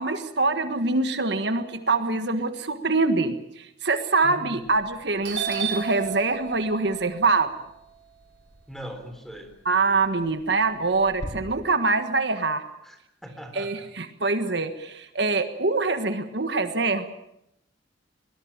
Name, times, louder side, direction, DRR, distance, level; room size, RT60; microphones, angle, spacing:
voice 1, 0.0-7.5 9.6-12.6 13.5-17.0, right 3 dB, 65° right, 9 dB, 1.5 m, -24 dB
voice 2, 4.2-4.6 8.7-9.5 12.8-13.9, equal, ahead, 7 dB, 3.9 m, -40 dB
Doorbell, 4.7-4.9 5.2-9.4 9.7-11.3, right 7 dB, 90° right, 6.2 m, -34 dB
22.5 x 20.0 x 8.9 m, 0.82 s
head